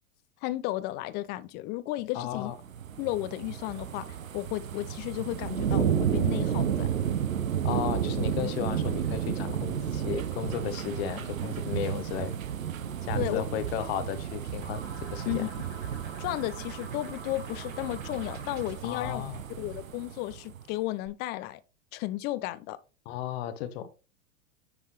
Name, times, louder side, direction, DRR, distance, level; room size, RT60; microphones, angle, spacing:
voice 1, 0.4-2.5 3.0-4.1 4.3-6.9 13.1-13.4 15.2-15.5 16.2-19.2 19.6-21.6 21.9-22.8, left 17 dB, 25° left, 0.4 m, -33 dB
voice 2, 2.1-2.5 7.6-12.3 13.0-14.8 15.1-15.5 18.8-19.4 23.1-23.9, left 9 dB, 50° left, 0.9 m, -34 dB
sound 1, 2.5-20.6 21.1-21.2, right 9 dB, 85° right, 0.8 m, -32 dB
sound 2, 14.6-19.0, right 3 dB, 55° right, 3.4 m, -47 dB
9.5 x 3.6 x 2.9 m
hypercardioid pair, 105°, 40 cm